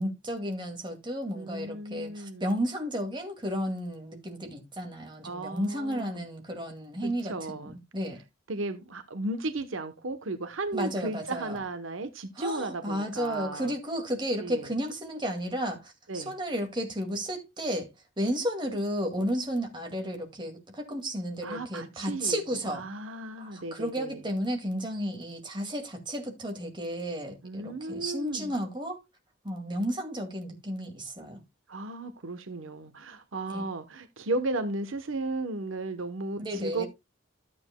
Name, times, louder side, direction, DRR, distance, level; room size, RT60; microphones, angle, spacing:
voice 1, 0.0-8.2 10.7-11.6 12.4-17.9 18.2-22.9 23.4-29.0 29.4-31.4 33.5-33.6 36.4-36.9, equal, 25° right, 2.2 m, -33 dB
voice 2, 1.3-2.5 5.2-6.3 7.0-7.8 8.5-13.7 14.4-14.7 16.1-16.4 21.4-24.2 27.4-28.5 31.7-36.8, right 2 dB, 85° right, 1.0 m, -35 dB
13.0 x 8.6 x 2.2 m
head